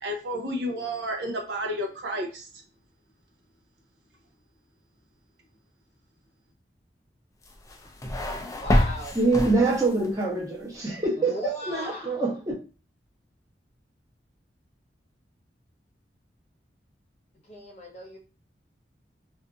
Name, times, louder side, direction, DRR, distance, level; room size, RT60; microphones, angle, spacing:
voice 1, 0.0-2.5, equal, 75° right, 2 dB, 0.7 m, -31 dB
sound 1, 7.4-10.1, left 1 dB, 20° left, 0.3 m, -27 dB
voice 2, 8.6-9.1 11.2-12.2 17.4-18.2, left 1 dB, 40° left, -1 dB, 0.8 m, -37 dB
voice 3, 9.1-11.4 11.6-12.4, right 3 dB, 20° right, -4 dB, 0.9 m, -24 dB
2.5 x 2.5 x 2.4 m, 0.34 s
head